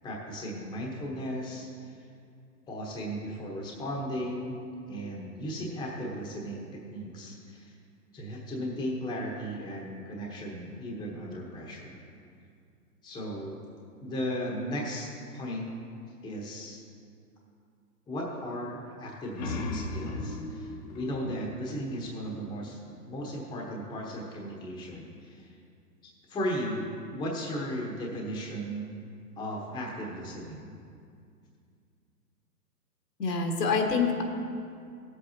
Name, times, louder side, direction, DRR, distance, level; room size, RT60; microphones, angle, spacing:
voice 1, 0.0-1.9 2.7-4.6 4.9-7.7 8.1-12.0 13.0-13.6 14.0-15.7 16.2-16.8 18.1-22.8 23.1-25.6 26.0-28.9 29.4-30.7, equal, 10° left, -2 dB, 1.0 m, -36 dB
sound 1, 19.1-22.5, left 2 dB, 25° left, 0.6 m, -37 dB
voice 2, 33.2-34.2, left 4 dB, 75° left, 2 dB, 1.7 m, -26 dB
15.5 x 8.0 x 2.9 m, 2.4 s
hypercardioid pair, 130°, 49 cm